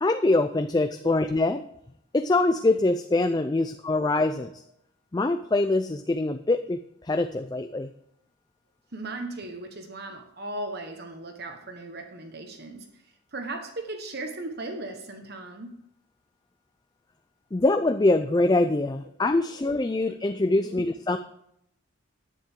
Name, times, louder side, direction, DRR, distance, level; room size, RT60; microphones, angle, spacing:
voice 1, 0.0-1.6 2.1-4.6 5.1-6.8 7.0-7.9 17.5-21.2, left 2 dB, 20° left, 8 dB, 0.4 m, -24 dB
voice 2, 8.9-13.0 13.3-15.8 19.4-19.6 20.5-20.8, right 2 dB, 50° right, 5 dB, 1.3 m, -37 dB
10.5 x 10.5 x 3.7 m, 0.74 s
head